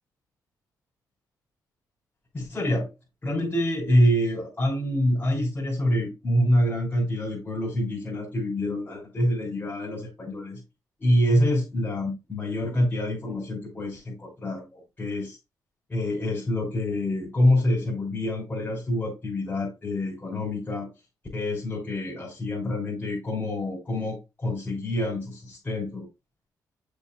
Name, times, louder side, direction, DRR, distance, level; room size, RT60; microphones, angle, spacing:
voice 1, 2.3-2.9 3.2-10.6 11.0-15.4 15.9-20.9 21.3-26.1, left 1 dB, 30° left, 4.0 m, -26 dB
7.1 x 7.0 x 2.3 m
cardioid pair, 70°, 8 cm